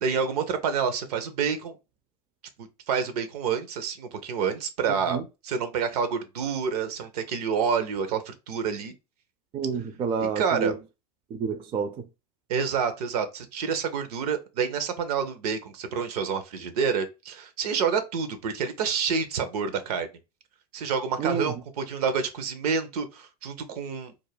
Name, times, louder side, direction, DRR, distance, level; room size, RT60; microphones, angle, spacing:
voice 1, 0.0-1.8 2.6-5.2 5.4-8.9 10.2-10.7 12.5-20.1 20.7-24.1, right 6 dB, 70° right, 0.6 m, -28 dB
voice 2, 9.5-10.8 11.3-12.1 21.2-21.6, right 5 dB, 25° right, 0.4 m, -29 dB
2.4 x 2.1 x 3.2 m
hypercardioid pair, 105°, 20 cm